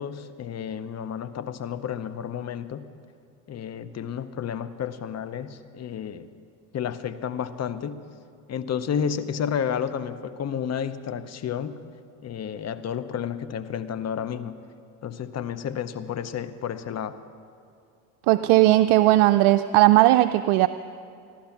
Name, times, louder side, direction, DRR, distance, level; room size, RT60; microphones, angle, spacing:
voice 1, 0.0-2.8 3.5-6.3 6.7-8.0 8.5-11.8 12.2-14.6 15.0-17.2, left 8 dB, 35° left, 13 dB, 0.8 m, -31 dB
voice 2, 18.3-20.7, right 16 dB, 65° right, 10 dB, 0.5 m, -17 dB
15.0 x 11.5 x 5.8 m, 2.5 s
hypercardioid pair, 80°, 46 cm